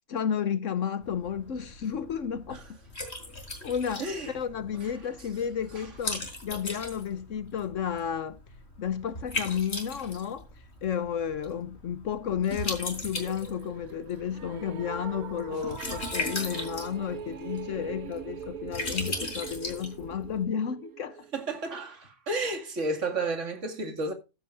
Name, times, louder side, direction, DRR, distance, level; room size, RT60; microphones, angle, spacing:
voice 1, 0.1-2.6 3.3-3.4 3.6-8.4 8.8-10.5 10.8-21.2, left 8 dB, 65° left, 1.1 m, -32 dB
Liquid, 1.0-20.4, left 2 dB, 50° left, 4.1 m, -38 dB
voice 2, 4.0-4.4 4.8-4.9 5.7-5.9 15.5-15.7 21.3-24.1, right 2 dB, 60° right, 2.5 m, -32 dB
sound 1, 13.2-21.4, right 8 dB, 90° right, 1.4 m, -42 dB
14.0 x 11.0 x 2.5 m
omnidirectional pair, 1.5 m